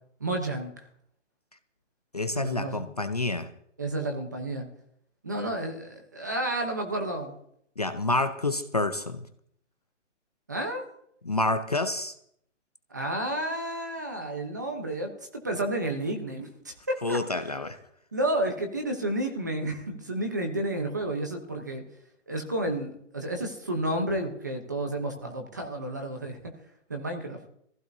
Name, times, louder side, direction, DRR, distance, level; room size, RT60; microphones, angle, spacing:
voice 1, 0.2-0.7 2.3-2.8 3.8-4.7 5.2-7.3 10.5-10.8 12.9-17.2 18.1-21.8 22.3-26.4 26.9-27.4, right 1 dB, 15° right, 4 dB, 0.8 m, -31 dB
voice 2, 2.1-3.5 7.8-9.2 11.2-12.1 17.0-17.8, left 2 dB, 30° left, 9 dB, 0.6 m, -28 dB
22.5 x 15.5 x 2.7 m, 0.70 s
hypercardioid pair, 180°, 37 cm